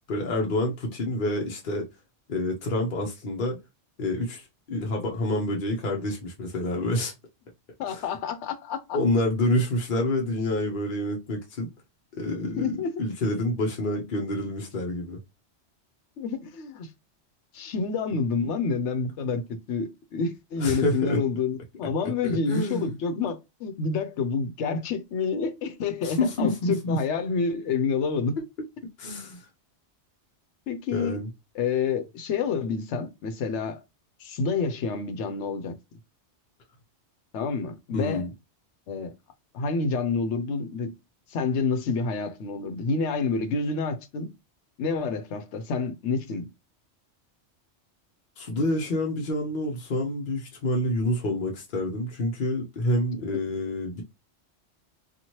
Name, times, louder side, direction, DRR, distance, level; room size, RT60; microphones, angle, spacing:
voice 1, 0.1-1.9 2.3-3.6 4.0-7.1 7.9-8.1 8.9-11.7 12.1-15.2 20.6-21.2 22.2-23.0 26.0-27.0 29.0-29.4 30.9-31.3 37.9-38.3 48.4-54.0, left 1 dB, 50° left, 0.8 m, -28 dB
voice 2, 7.8-9.0 12.3-12.9 16.2-16.9 17.5-19.4 19.7-28.3 30.7-31.2 31.5-33.8 34.2-35.7 37.3-38.2 38.9-39.1 39.5-40.9 41.3-44.3 44.8-46.4, left 5 dB, 85° left, 0.9 m, -28 dB
2.8 x 2.5 x 3.0 m
omnidirectional pair, 1.2 m